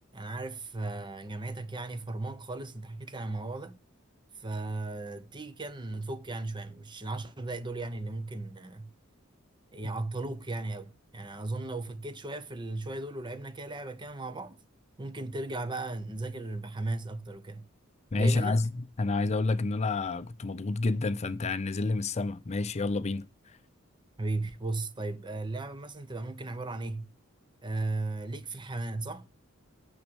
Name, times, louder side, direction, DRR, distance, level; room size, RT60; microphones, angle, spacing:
voice 1, 0.1-3.8 4.3-8.9 9.7-14.6 15.0-17.7 18.1-18.6 24.2-27.1 27.6-29.3, right 2 dB, 20° right, 0.7 m, -36 dB
voice 2, 18.1-18.6 19.0-23.3, left 3 dB, 30° left, 0.5 m, -29 dB
9.2 x 6.3 x 6.1 m
head